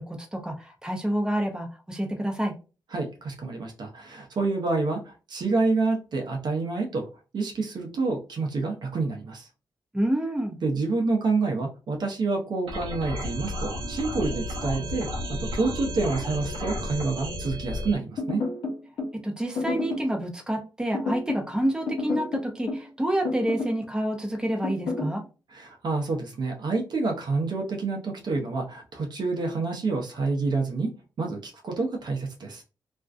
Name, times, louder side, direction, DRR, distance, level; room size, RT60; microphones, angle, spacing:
voice 1, 0.0-2.5 9.9-10.6 19.2-25.2, right 1 dB, 10° right, 1 dB, 0.6 m, -28 dB
voice 2, 2.9-7.1 7.3-9.5 10.6-18.4 25.5-30.9 31.2-32.6, right 3 dB, 55° right, 2 dB, 0.7 m, -28 dB
sound 1, 12.7-18.0, left 1 dB, 85° right, 1.0 m, -33 dB
sound 2, 18.2-19.2 19.6-20.1 20.9-21.5 21.9-22.9 23.2-23.8 24.6-25.2, left 3 dB, 75° left, 0.8 m, -30 dB
2.5 x 2.1 x 2.4 m, 0.33 s
supercardioid pair, 55°, 9 cm